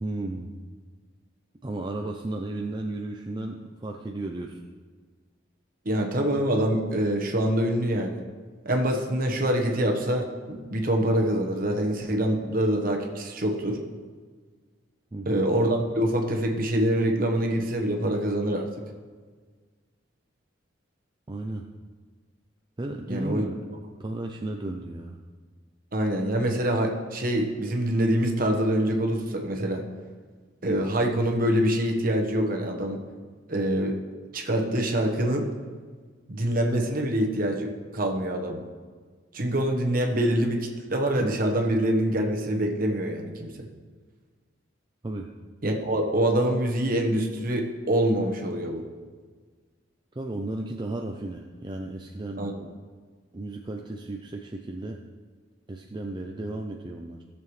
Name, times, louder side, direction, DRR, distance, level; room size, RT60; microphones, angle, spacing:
voice 1, 0.0-0.5 1.6-4.6 15.1-15.4 21.3-21.7 22.8-23.6 24.0-25.2 45.0-45.3 50.1-52.4 53.3-55.0 55.7-57.2, right 2 dB, 25° right, 1 dB, 0.5 m, -34 dB
voice 2, 5.8-8.2 8.6-13.8 15.2-18.7 23.1-23.5 25.9-29.8 30.6-33.0 33.5-34.0 34.3-35.5 36.3-38.6 39.3-43.7 45.6-48.8 52.4-52.7, right 1 dB, 45° right, 3 dB, 1.2 m, -25 dB
15.5 x 6.9 x 3.2 m, 1.5 s
head